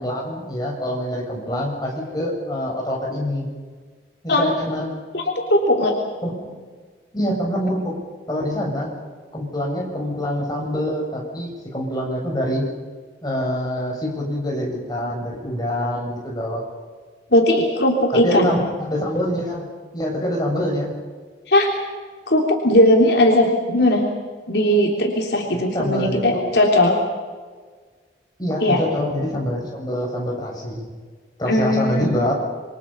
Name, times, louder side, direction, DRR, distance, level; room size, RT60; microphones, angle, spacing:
voice 1, 0.0-3.4 4.2-4.9 6.2-6.5 7.1-8.0 8.3-8.9 9.3-12.7 13.2-16.6 18.1-19.6 19.9-20.9 25.5-26.4 28.4-30.9 31.4-32.3, equal, 20° left, -2 dB, 6.7 m, -25 dB
voice 2, 5.5-5.9 17.3-18.5 21.5-21.7 22.3-24.0 24.5-27.0 28.6-28.8 31.5-32.1, left 1 dB, 65° left, 0 dB, 3.4 m, -18 dB
27.5 x 23.5 x 5.8 m, 1.5 s
head